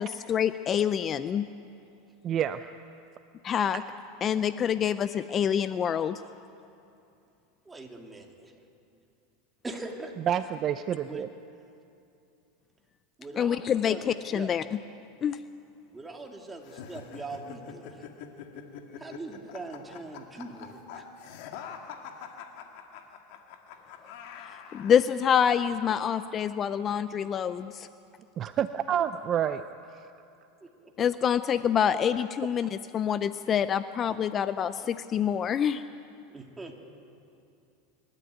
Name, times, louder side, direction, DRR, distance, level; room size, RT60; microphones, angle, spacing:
voice 1, 0.0-1.5 3.4-3.8 4.2-6.2 13.4-14.6 15.2-15.4 24.7-27.9 31.0-35.8, left 8 dB, 30° left, 13 dB, 0.5 m, -26 dB
voice 2, 2.2-2.7 10.3-11.3 28.4-29.6 29.9-30.1, right 9 dB, 35° right, 11 dB, 0.6 m, -28 dB
voice 3, 7.6-8.5 9.6-10.1 11.1-11.2 13.2-14.5 15.9-18.0 19.0-21.0 30.6-30.9 36.3-36.8, right 2 dB, 10° right, 2 dB, 2.7 m, -42 dB
sound 1, 16.6-25.1, left 7 dB, 65° left, 2.1 m, -44 dB
25.0 x 13.0 x 9.3 m, 2.6 s
supercardioid pair, 120°, 0 cm